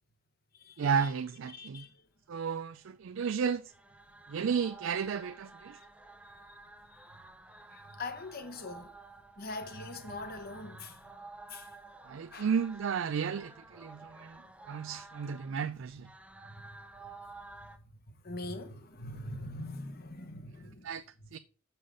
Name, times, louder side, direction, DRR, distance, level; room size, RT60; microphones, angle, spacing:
voice 1, 0.8-1.9 2.3-3.7 4.3-5.8 12.0-16.1 20.8-21.0 21.3-21.4, right 6 dB, 65° right, 0.4 m, -33 dB
voice 2, 1.5-1.9 6.2-6.6 6.9-7.2 7.5-8.9 9.4-11.0 11.5-11.7 12.3-12.5 16.5-16.7 18.2-20.9, left 2 dB, 45° left, 1.1 m, -43 dB
sound 1, 3.5-17.8, right 3 dB, 5° right, 0.6 m, -52 dB
6.9 x 5.7 x 5.0 m
head